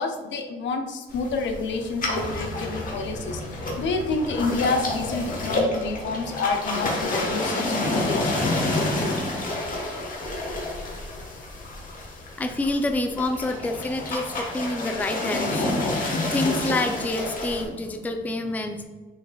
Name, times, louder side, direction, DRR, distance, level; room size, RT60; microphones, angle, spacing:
voice 1, 0.0-8.5, left 3 dB, 65° left, 5 dB, 0.7 m, -29 dB
sound 1, 1.1-17.6, left 2 dB, 40° left, 1.2 m, -29 dB
voice 2, 12.4-18.8, left 2 dB, 10° left, 6 dB, 0.4 m, -28 dB
5.7 x 4.1 x 2.3 m, 1.2 s
cardioid pair, 90°, 20 cm